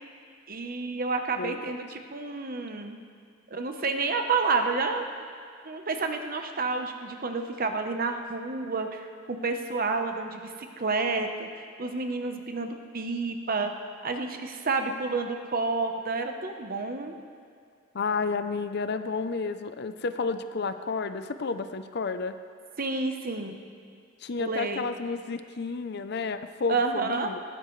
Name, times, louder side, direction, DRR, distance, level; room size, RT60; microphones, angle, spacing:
voice 1, 0.5-3.0 3.5-5.1 5.6-10.4 10.8-11.5 11.8-13.7 14.0-17.2 22.8-23.6 24.4-24.9 26.7-27.3, right 4 dB, 50° right, 5 dB, 1.0 m, -29 dB
voice 2, 17.9-22.3 24.2-27.4, left 4 dB, 60° left, 10 dB, 0.6 m, -31 dB
19.5 x 15.0 x 3.2 m, 2.2 s
head